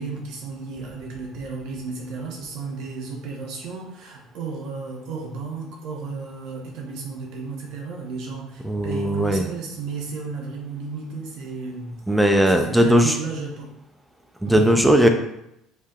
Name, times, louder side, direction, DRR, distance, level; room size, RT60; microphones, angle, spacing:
voice 1, 0.0-12.0 12.4-13.7 14.4-14.6, right 4 dB, 70° right, 0 dB, 1.0 m, -33 dB
voice 2, 8.6-9.5 12.1-13.1 14.4-15.1, equal, 5° right, 5 dB, 0.4 m, -18 dB
5.3 x 3.3 x 2.4 m, 0.80 s
cardioid pair, 135°, 0 cm